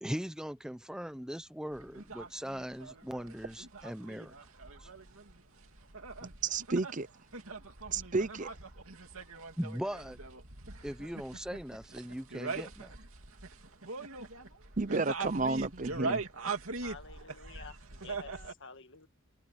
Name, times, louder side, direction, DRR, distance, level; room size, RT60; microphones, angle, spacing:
voice 1, 0.0-4.3 4.8-4.9 9.6-10.2 10.8-12.9, equal, 5° right, 0.9 m, -39 dB
sound 1, 1.7-18.5, right 4 dB, 70° right, 2.8 m, -42 dB
voice 2, 6.4-7.1 7.9-8.5 14.8-16.2, right 3 dB, 35° right, 0.8 m, -31 dB
voice 3, 16.8-19.1, left 4 dB, 60° left, 1.9 m, -50 dB
head